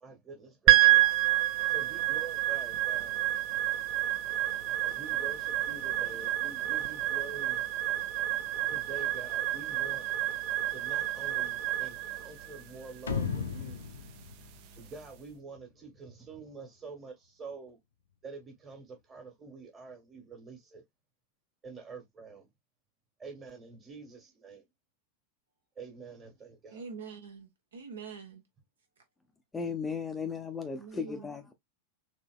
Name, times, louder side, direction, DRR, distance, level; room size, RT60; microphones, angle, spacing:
voice 1, 0.0-1.2 1.6-3.2 4.8-7.6 8.7-10.1 10.7-13.8 14.7-17.8 18.2-20.8 21.6-22.5 23.2-24.7 25.7-26.8, right 4 dB, 25° right, 1.5 m, -47 dB
sound 1, 0.7-15.0, right 16 dB, 45° right, 0.5 m, -29 dB
sound 2, 13.1-15.6, left 6 dB, 70° left, 0.6 m, -36 dB
voice 2, 26.7-28.4 30.8-31.3, right 5 dB, 65° right, 1.0 m, -45 dB
voice 3, 29.5-31.5, left 5 dB, 10° left, 0.5 m, -36 dB
4.0 x 3.0 x 2.3 m
figure-of-eight pair, 90°, 0 cm